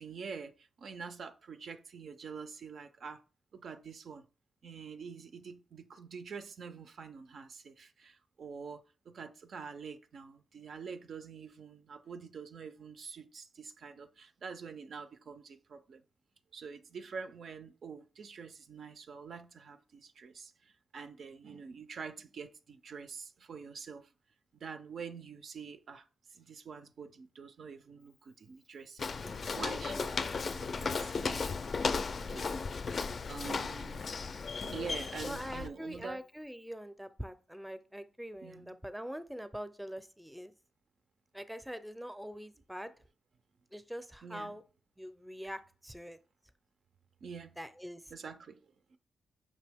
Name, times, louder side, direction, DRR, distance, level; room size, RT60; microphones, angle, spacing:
voice 1, 0.0-3.2 3.5-4.3 4.6-16.0 16.5-24.1 24.5-32.9 33.3-34.0 34.6-36.2 38.4-38.8 44.2-44.5 47.2-47.6 48.1-49.0, right 5 dB, 70° right, 0.4 m, -46 dB
Walk footsteps, 29.0-35.7, left 4 dB, 55° left, 0.3 m, -35 dB
voice 2, 29.2-30.1 35.2-40.5 41.3-42.9 43.7-44.6 45.0-46.2 47.6-48.1, equal, 5° right, 0.5 m, -44 dB
5.2 x 2.7 x 3.4 m
cardioid pair, 55°, 0 cm